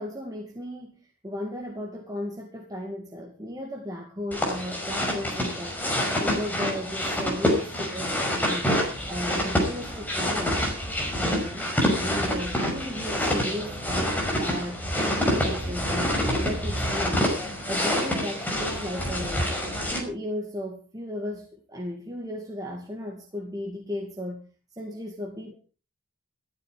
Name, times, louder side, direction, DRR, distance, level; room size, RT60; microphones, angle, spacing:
voice 1, 0.0-8.7 9.1-10.6 11.1-11.7 12.0-16.1 16.4-17.3 17.7-19.5 19.9-24.4 24.7-25.5, left 1 dB, 15° right, 2.3 m, -35 dB
sound 1, 4.3-20.0, equal, 10° left, 5.6 m, -27 dB
15.5 x 14.0 x 4.8 m
head